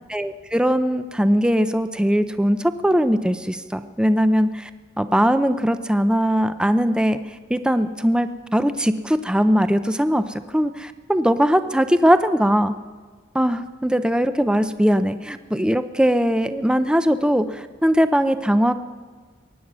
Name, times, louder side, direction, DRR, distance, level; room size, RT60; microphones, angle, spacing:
voice 1, 0.1-4.7 5.0-7.2 7.5-10.2 10.5-12.7 13.3-18.7, equal, 5° right, 11 dB, 0.5 m, -20 dB
23.0 x 10.0 x 6.2 m, 1.5 s
head